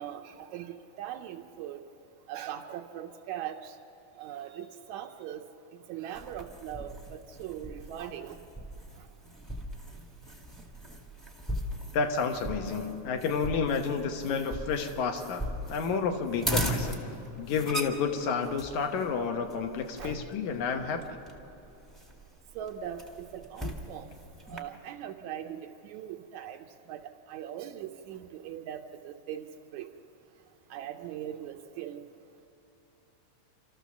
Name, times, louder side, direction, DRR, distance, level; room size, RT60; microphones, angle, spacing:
voice 1, 0.0-1.8 2.3-3.8 4.2-5.4 5.9-8.4 13.5-13.6 20.0-20.2 22.6-24.1 24.5-29.5 29.7-29.9 30.7-32.0, right 10 dB, 75° right, 4 dB, 1.9 m, -40 dB
sound 1, 6.1-24.6, equal, ahead, 0.8 m, -39 dB
voice 2, 11.9-17.1 17.4-21.0, left 5 dB, 75° left, 4 dB, 2.4 m, -30 dB
28.0 x 13.5 x 7.1 m, 2.9 s
omnidirectional pair, 3.5 m